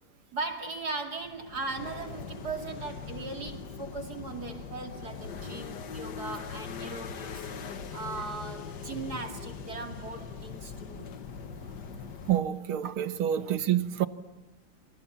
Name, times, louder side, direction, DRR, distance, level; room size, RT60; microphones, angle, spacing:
voice 1, 0.3-11.1 13.3-13.6, right 3 dB, 50° right, 3.0 m, -38 dB
sound 1, 1.2-12.4, left 6 dB, 55° left, 1.9 m, -41 dB
voice 2, 12.3-14.1, right 11 dB, 90° right, 2.1 m, -27 dB
29.0 x 27.0 x 7.2 m
omnidirectional pair, 2.2 m